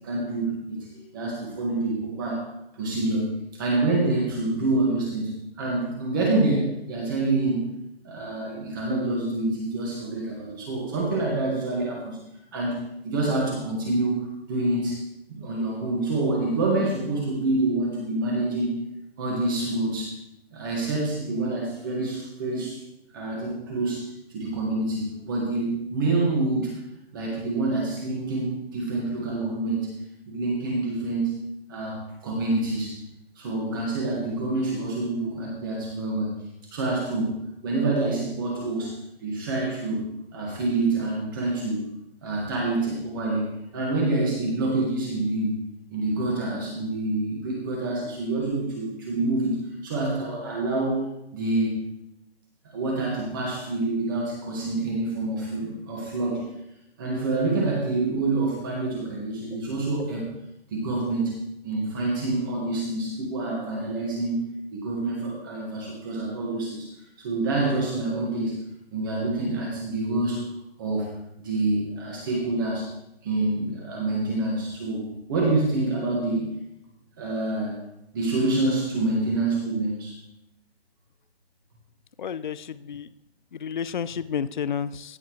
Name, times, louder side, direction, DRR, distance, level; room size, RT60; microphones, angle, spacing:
voice 1, 0.0-2.5 2.7-7.7 8.0-12.2 12.5-12.8 13.0-14.2 14.5-15.0 15.3-18.8 19.2-20.2 20.5-22.8 23.1-26.7 27.1-29.9 30.3-31.4 31.7-33.0 33.3-36.3 36.7-40.1 40.3-41.9 42.2-45.6 45.9-51.0 51.3-51.8 52.7-56.5 57.0-60.3 60.7-64.5 64.7-66.9 67.2-68.6 68.9-70.4 70.8-71.1 71.4-72.9 73.2-76.5 77.2-77.8 78.1-80.2, right 2 dB, 20° right, -2 dB, 1.7 m, -27 dB
voice 2, 82.2-83.1 83.5-85.2, left 7 dB, 50° left, 15 dB, 0.4 m, -31 dB
15.5 x 7.8 x 3.1 m, 0.84 s
hypercardioid pair, 170°, 32 cm